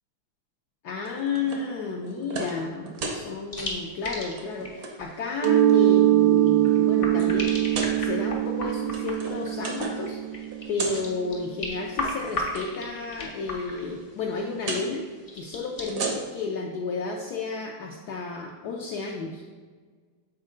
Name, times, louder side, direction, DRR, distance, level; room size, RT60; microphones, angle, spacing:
voice 1, 0.8-7.6 8.0-10.2 10.7-15.0 15.3-19.4, left 4 dB, 70° left, -1 dB, 1.0 m, -32 dB
sound 1, 1.1-1.7 2.0-2.6 2.9-3.2 3.9-4.1 4.4-4.9 5.6-6.1 6.7-6.8 7.6-8.0 8.7-10.1 10.4-11.1 11.9-12.6 14.6-14.9 15.7-16.5, right 3 dB, 60° right, 1.1 m, -34 dB
sound 2, 3.5-15.9, left 1 dB, 45° left, 0.4 m, -37 dB
Mallet percussion, 5.4-11.0, right 13 dB, 75° right, 1.3 m, -22 dB
7.4 x 4.3 x 3.7 m, 1.5 s
omnidirectional pair, 2.1 m